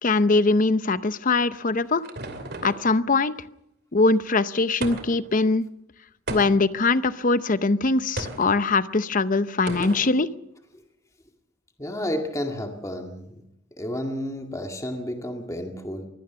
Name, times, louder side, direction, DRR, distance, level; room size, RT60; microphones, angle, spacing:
voice 1, 0.0-2.0 2.6-3.4 3.9-5.7 6.3-10.3, left 3 dB, 40° left, 14 dB, 0.8 m, -22 dB
sound 1, 1.4-2.9 4.8-5.3 6.3-6.8 8.2-8.5 9.7-10.1, right 2 dB, 55° right, 2.6 m, -34 dB
voice 2, 11.8-13.4 13.8-16.1, left 1 dB, 15° left, 4 dB, 2.0 m, -31 dB
23.0 x 16.5 x 6.9 m, 0.82 s
head